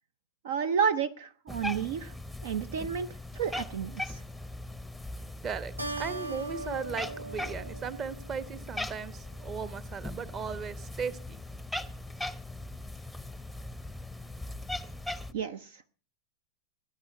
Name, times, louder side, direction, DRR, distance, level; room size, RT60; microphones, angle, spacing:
voice 1, 0.4-2.1 2.4-3.1 3.3-4.2 15.3-15.8, right 7 dB, 55° right, 0.6 m, -31 dB
Cat, 1.5-15.3, left 1 dB, ahead, 0.8 m, -40 dB
voice 2, 5.4-11.4, right 6 dB, 25° right, 1.1 m, -37 dB
Keyboard (musical), 5.8-8.7, right 2 dB, 85° right, 1.0 m, -39 dB
19.0 x 10.0 x 5.6 m
figure-of-eight pair, 90°, 0 cm